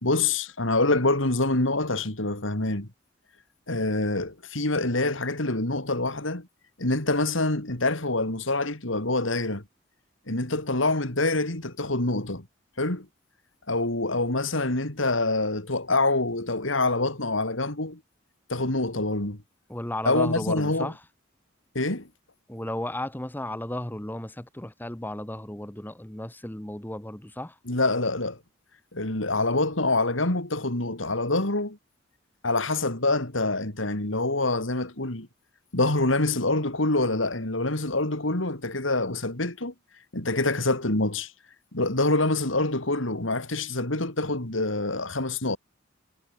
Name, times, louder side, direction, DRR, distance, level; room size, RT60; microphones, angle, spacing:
voice 1, 0.0-2.9 3.7-6.5 6.8-9.6 10.3-12.5 12.8-13.1 13.7-18.0 18.5-19.4 20.1-20.9 21.8-22.1 27.7-28.4 28.9-31.8 32.4-35.3 35.7-39.7 40.1-41.3 41.7-45.6, left 2 dB, 75° left, 3.6 m, -26 dB
voice 2, 19.7-21.0 22.5-27.6, left 1 dB, 10° left, 1.2 m, -34 dB
head